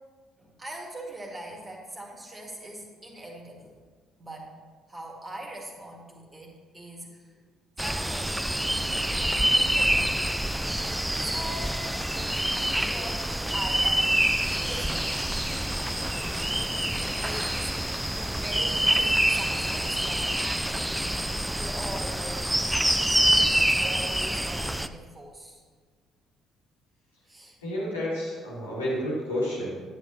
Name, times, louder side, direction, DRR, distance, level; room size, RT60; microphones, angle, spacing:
voice 1, 0.4-3.8 4.2-4.5 4.9-7.4 7.8-8.6 9.2-10.0 11.2-11.9 12.9-13.3 13.5-15.1 17.2-22.5 22.8-25.6 27.3-27.6, right 1 dB, 25° right, 0 dB, 1.9 m, -42 dB
sound 1, 7.8-24.9, right 1 dB, 5° right, 0.4 m, -26 dB
voice 2, 27.6-29.7, left 1 dB, 80° left, -7 dB, 2.0 m, -30 dB
9.4 x 9.3 x 2.9 m, 1.5 s
figure-of-eight pair, 45°, 0 cm